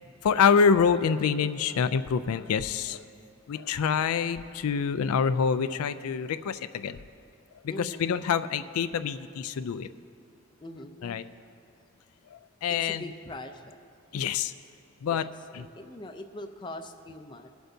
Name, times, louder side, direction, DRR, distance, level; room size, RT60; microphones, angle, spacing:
voice 1, 0.2-3.0 3.5-7.0 7.6-9.9 11.0-11.2 12.6-13.0 14.1-14.5 15.0-15.3 15.5-15.7, left 6 dB, 85° left, 13 dB, 0.4 m, -26 dB
voice 2, 7.7-8.2 10.6-11.4 12.8-13.8 15.1-17.5, left 1 dB, 20° left, 7 dB, 0.4 m, -42 dB
22.0 x 7.9 x 2.7 m, 2.4 s
head